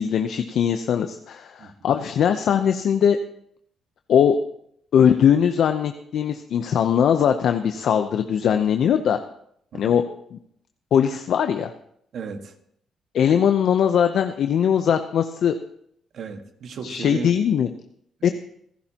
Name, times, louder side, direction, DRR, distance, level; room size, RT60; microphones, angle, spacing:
voice 1, 0.0-3.2 4.1-4.4 4.9-9.2 9.7-10.0 10.3-10.4 10.9-11.7 13.1-15.5 16.8-17.7 18.2-18.3, left 8 dB, 70° left, 7 dB, 0.8 m, -20 dB
voice 2, 12.1-12.5 16.1-17.3 18.2-18.3, right 5 dB, 65° right, 6 dB, 1.7 m, -34 dB
27.0 x 11.5 x 3.0 m, 0.69 s
cardioid pair, 90°, 0 cm